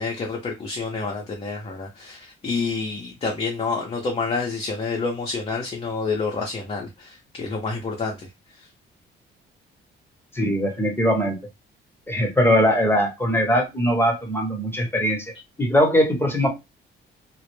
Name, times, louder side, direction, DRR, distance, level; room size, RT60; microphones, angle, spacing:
voice 1, 0.0-8.3 8.6-8.7, left 4 dB, 30° left, 0.6 m, -28 dB
voice 2, 10.3-11.4 12.1-15.3 15.6-16.5, equal, 10° left, 0.9 m, -21 dB
2.1 x 2.0 x 3.1 m
cardioid pair, 90°, 20 cm